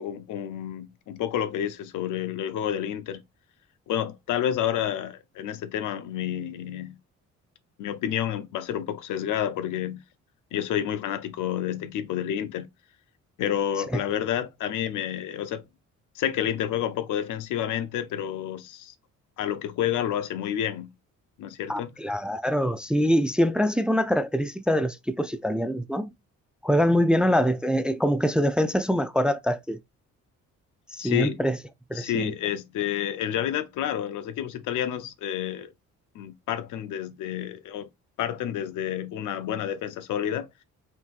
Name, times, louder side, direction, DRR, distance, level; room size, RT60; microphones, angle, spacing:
voice 1, 0.0-3.2 3.9-7.0 7.8-10.0 10.5-12.7 13.4-15.6 16.1-18.9 19.4-20.9 21.4-21.9 31.0-31.4 31.9-35.7 36.1-37.9 38.2-40.5, left 10 dB, 80° left, 0.7 m, -29 dB
voice 2, 21.7-26.1 26.6-29.8 30.9-31.6 31.9-32.3, equal, 5° right, 0.3 m, -24 dB
5.7 x 2.7 x 2.4 m
cardioid pair, 90°, 30 cm